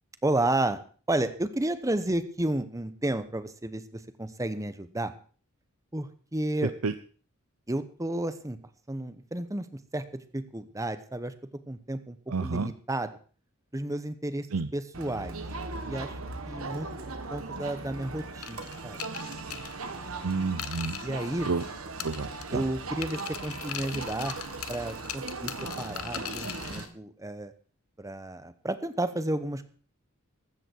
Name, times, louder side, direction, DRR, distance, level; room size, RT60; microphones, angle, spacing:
voice 1, 0.2-0.8 1.1-5.1 5.9-6.7 7.7-8.6 8.9-9.7 9.9-11.3 11.7-12.2 12.4-13.1 13.7-14.4 14.7-15.4 15.9-16.1 16.4-16.9 17.3-19.0 21.0-21.5 22.5-24.3 24.7-25.5 25.8-27.5 28.0-29.7, right 1 dB, 15° right, 11 dB, 1.0 m, -31 dB
voice 2, 6.6-6.9 12.3-12.7 14.5-14.7 20.2-21.0 21.5-21.6 22.0-22.7, right 4 dB, 90° right, 11 dB, 0.7 m, -30 dB
Crowd, 14.9-26.9, right 3 dB, 70° right, 1.8 m, -39 dB
sound 1, 18.4-21.7 22.0-22.7 23.0-26.9, left 10 dB, 85° left, 1.1 m, -40 dB
15.0 x 13.5 x 4.6 m, 0.41 s
head